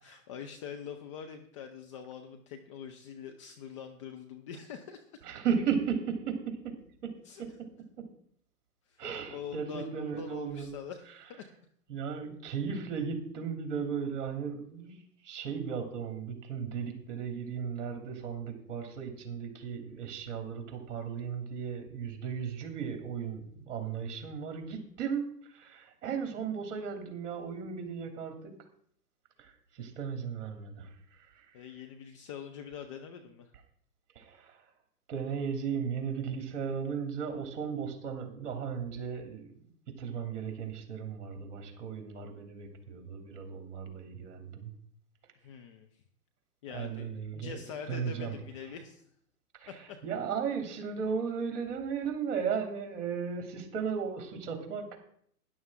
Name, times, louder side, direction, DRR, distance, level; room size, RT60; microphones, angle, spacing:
voice 1, 0.0-5.2 7.2-7.4 8.9-9.0 9.3-11.0 11.3-11.5 31.5-33.5 45.4-45.9 46.6-49.0 49.7-50.0, left 7 dB, 20° left, 5 dB, 0.5 m, -44 dB
voice 2, 5.2-6.7 7.0-7.1 7.4-7.7 8.0-8.1 9.0-10.7 11.9-28.5 29.4-30.9 31.3-31.5 34.1-34.6 35.1-44.7 46.7-47.6 47.9-48.4 49.5-55.0, right 6 dB, 50° right, 5 dB, 3.0 m, -36 dB
12.5 x 11.0 x 3.7 m, 0.65 s
hypercardioid pair, 130°, 47 cm